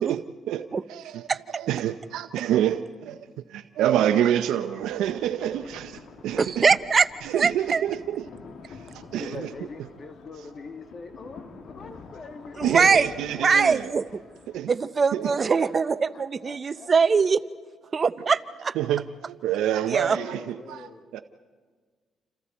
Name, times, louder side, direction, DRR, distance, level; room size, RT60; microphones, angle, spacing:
voice 1, 0.0-3.2 3.5-6.7 7.2-8.3 8.7-8.8 9.1-9.5 12.6-13.9 14.5-14.7 15.1-15.3 18.8-21.2, right 11 dB, 85° right, 0.6 m, -27 dB
sound 1, 4.7-14.6, left 4 dB, 65° left, 2.4 m, -47 dB
voice 2, 6.4-7.1 7.3-7.8 12.6-13.1 13.4-14.2 14.7-17.4 17.9-18.7 19.9-20.2, right 5 dB, 40° right, 0.8 m, -22 dB
voice 3, 9.1-12.6 13.1-13.7 15.2-16.9 20.0-21.1, left 4 dB, 45° left, 1.7 m, -43 dB
28.5 x 28.5 x 4.3 m
cardioid pair, 90°, 0 cm